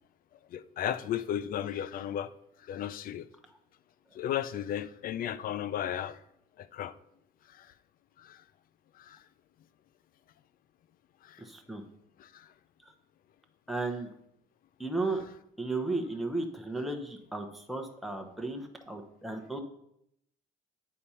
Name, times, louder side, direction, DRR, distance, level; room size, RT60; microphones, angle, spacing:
voice 1, 0.5-2.3 2.7-3.3 4.1-6.2 6.6-6.9 7.6-7.7 8.2-8.4 9.0-9.2 11.2-11.4 12.2-12.5, left 10 dB, 55° left, 0.5 m, -34 dB
voice 2, 11.4-11.8 13.7-14.1 14.8-15.2 15.6-19.6, right 2 dB, ahead, 0.9 m, -34 dB
8.5 x 4.3 x 5.6 m
cardioid pair, 110°, 17 cm